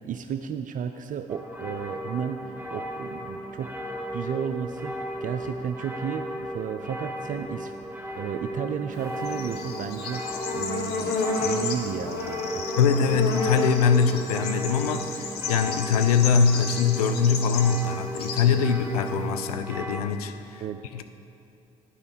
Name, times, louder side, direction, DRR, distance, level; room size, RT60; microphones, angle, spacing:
voice 1, 0.0-3.7 4.1-7.8 8.1-10.2 10.5-12.6 15.5-15.6 18.5-18.7 20.6-21.0, right 8 dB, 45° right, 8 dB, 0.4 m, -33 dB
sound 1, 1.3-20.0, equal, 10° right, 1.1 m, -36 dB
Bird / Insect, 8.9-19.5, left 4 dB, 60° left, 1.0 m, -32 dB
voice 2, 12.8-20.6 20.9-21.0, left 6 dB, 80° left, 8 dB, 0.4 m, -23 dB
10.0 x 5.4 x 6.2 m, 2.7 s
figure-of-eight pair, 45°, 19 cm